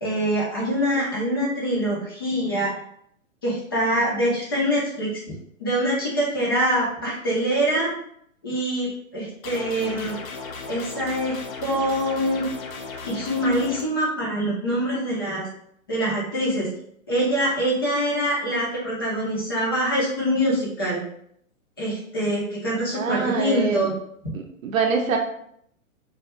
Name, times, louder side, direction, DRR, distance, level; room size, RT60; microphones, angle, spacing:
voice 1, 0.0-2.7 3.4-5.1 5.6-7.9 8.4-10.2 10.7-12.5 13.0-15.4 15.9-16.7 17.1-21.0 21.8-23.9, equal, 20° left, -6 dB, 0.3 m, -24 dB
sound 1, 9.4-13.8, left 4 dB, 75° left, 0.6 m, -36 dB
voice 2, 22.9-23.9 24.3-25.2, right 5 dB, 75° right, 2 dB, 0.6 m, -25 dB
2.1 x 2.1 x 2.9 m, 0.68 s
hypercardioid pair, 135°, 41 cm